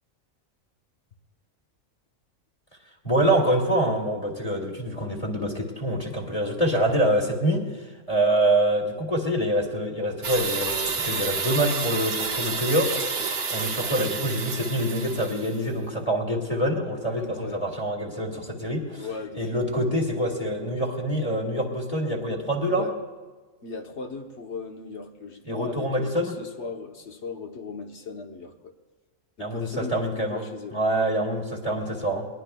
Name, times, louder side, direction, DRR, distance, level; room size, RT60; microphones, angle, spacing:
voice 1, 3.0-13.0 13.5-19.1 19.4-22.9 25.4-26.4 29.4-30.4 30.7-32.3, right 1 dB, 25° left, 1 dB, 2.1 m, -25 dB
sound 1, 10.2-15.6, right 5 dB, 60° right, 1.3 m, -30 dB
voice 2, 17.2-17.7 19.0-19.5 22.7-22.9 23.6-28.7 29.4-30.8 31.7-32.1, left 4 dB, 55° left, 4 dB, 1.3 m, -38 dB
21.0 x 20.0 x 2.3 m, 1.3 s
omnidirectional pair, 1.4 m